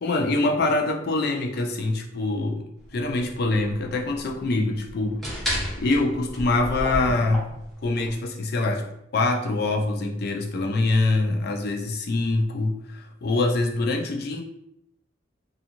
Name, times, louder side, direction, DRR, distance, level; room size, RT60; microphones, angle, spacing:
voice 1, 0.0-2.7 2.9-5.2 5.8-7.5 7.8-14.4, left 2 dB, 55° left, 3 dB, 0.4 m, -24 dB
sound 1, 2.8-8.1, equal, ahead, 0.7 m, -33 dB
2.8 x 2.4 x 2.5 m, 0.78 s
head